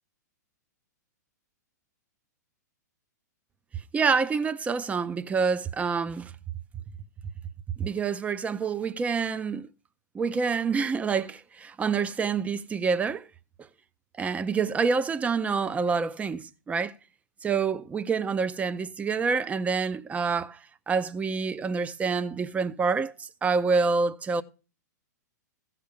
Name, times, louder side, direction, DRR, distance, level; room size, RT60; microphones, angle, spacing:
voice 1, 3.9-6.3 7.8-9.7 10.1-13.3 14.2-16.9 17.4-24.4, right 5 dB, 15° right, 0.6 m, -27 dB
15.5 x 5.8 x 5.2 m
hypercardioid pair, 115°, 10 cm